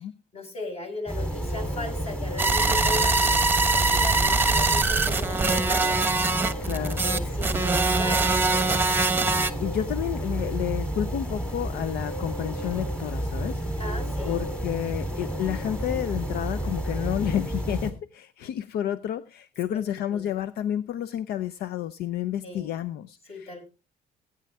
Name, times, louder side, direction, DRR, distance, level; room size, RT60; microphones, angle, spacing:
voice 1, 0.3-3.5 3.7-6.0 6.7-8.6 9.5-9.7 13.8-14.4 19.7-20.3 22.4-22.8 23.3-23.7, left 2 dB, 35° left, 4 dB, 5.9 m, -37 dB
sound 1, 1.1-17.9, right 1 dB, 5° left, 3.4 m, -31 dB
sound 2, 2.4-9.5, right 3 dB, 10° right, 1.2 m, -23 dB
voice 2, 6.6-7.4 9.6-13.8 14.2-23.7, left 11 dB, 70° left, 14 dB, 0.6 m, -31 dB
17.0 x 9.6 x 3.5 m, 0.29 s
cardioid pair, 110°, 17 cm